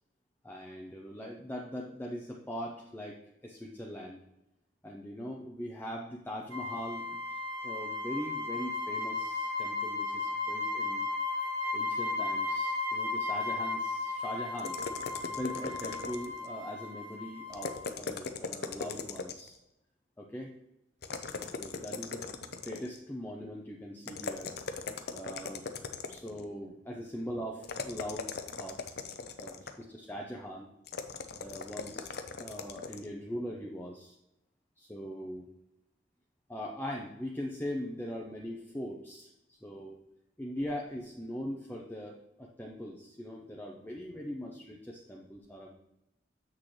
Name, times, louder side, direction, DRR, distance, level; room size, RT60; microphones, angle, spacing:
voice 1, 0.4-4.2 4.8-11.1 11.7-14.8 15.3-19.6 20.2-20.5 21.1-22.3 22.6-24.5 25.1-25.7 26.1-28.3 28.6-28.9 29.4-30.7 31.3-34.2 34.8-35.5 36.5-40.0 40.4-45.7, equal, 10° left, -1 dB, 0.6 m, -41 dB
sound 1, 6.5-17.9, left 3 dB, 80° right, 1.8 m, -35 dB
sound 2, 14.6-16.5 17.5-19.6 21.0-23.0 24.0-26.4 27.6-29.9 30.9-33.1, left 4 dB, 55° left, 0.6 m, -39 dB
7.4 x 6.3 x 3.2 m, 0.87 s
head